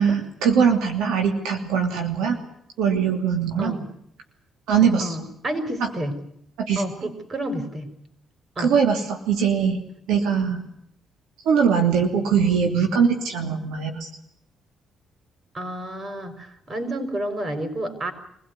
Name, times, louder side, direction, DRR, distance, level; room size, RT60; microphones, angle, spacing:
voice 1, 0.0-2.4 2.8-3.8 4.7-5.2 6.6-6.8 8.6-9.8 10.1-10.6 11.4-14.1, right 6 dB, 90° right, 3 dB, 2.9 m, -21 dB
voice 2, 5.0-6.1 6.8-7.9 8.6-8.7 15.5-18.1, right 1 dB, 40° right, 8 dB, 5.5 m, -30 dB
24.5 x 17.0 x 9.7 m, 0.72 s
cardioid pair, 90°, 0 cm